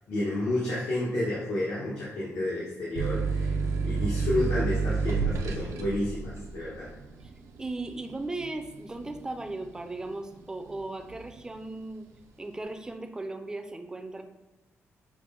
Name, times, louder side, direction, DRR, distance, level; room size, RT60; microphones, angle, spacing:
voice 1, 0.1-3.5 3.8-6.9, left 1 dB, 85° left, -7 dB, 1.1 m, -30 dB
sound 1, 3.0-10.2 10.7-11.4, right 4 dB, 85° right, 0.5 m, -30 dB
voice 2, 7.6-12.1 12.4-14.2, right 2 dB, 15° right, 6 dB, 0.4 m, -37 dB
5.9 x 2.0 x 3.7 m, 1.1 s
wide cardioid pair, 140°, 5 cm